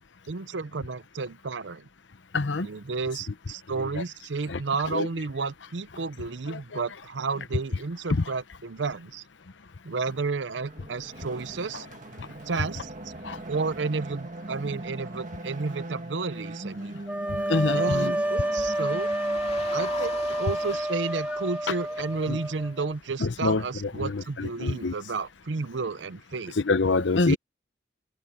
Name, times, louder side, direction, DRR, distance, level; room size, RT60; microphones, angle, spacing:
voice 1, 0.3-1.9 2.6-9.2 9.8-11.9 12.5-13.1 13.5-17.0 17.7-19.1 19.7-26.5 27.3-27.4, right 4 dB, 85° right, 0.7 m, -32 dB
voice 2, 2.3-2.7 3.9-4.0 4.5-4.6 4.9-5.1 6.5-6.8 8.1-8.3 12.2-12.3 13.2-13.4 17.3-18.1 22.3-22.4 23.2-24.9 26.6-27.4, left 3 dB, 85° left, 0.9 m, -26 dB
sound 1, 10.6-19.8, right 1 dB, 45° right, 2.0 m, -40 dB
sound 2, 17.1-22.9, right 1 dB, 10° right, 1.6 m, -29 dB
sound 3, 17.5-22.7, left 4 dB, 35° left, 2.3 m, -42 dB
head